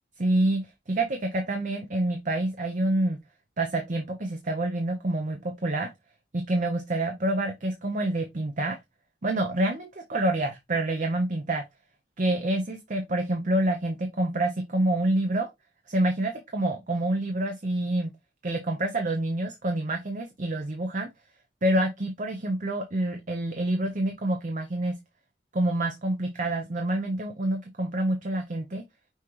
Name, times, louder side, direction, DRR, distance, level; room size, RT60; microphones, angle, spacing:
voice 1, 0.2-3.2 3.6-5.9 6.3-8.8 9.2-11.6 12.2-15.5 15.9-18.1 18.4-21.1 21.6-25.0 25.5-28.8, right 1 dB, 45° right, 0.7 m, -27 dB
5.6 x 2.9 x 3.1 m
head